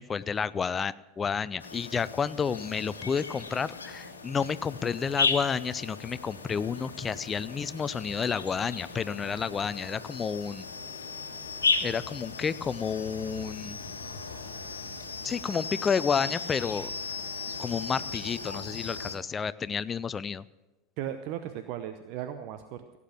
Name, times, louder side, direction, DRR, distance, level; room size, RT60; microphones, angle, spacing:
voice 1, 0.0-10.7 11.8-13.8 15.2-16.9 17.6-20.4, left 6 dB, 25° left, 17 dB, 0.5 m, -30 dB
sound 1, 1.6-19.2, left 4 dB, 85° left, 1.3 m, -36 dB
voice 2, 21.0-23.0, right 10 dB, 50° right, 9 dB, 0.8 m, -36 dB
16.5 x 8.5 x 5.9 m, 1.1 s
figure-of-eight pair, 80°, 0 cm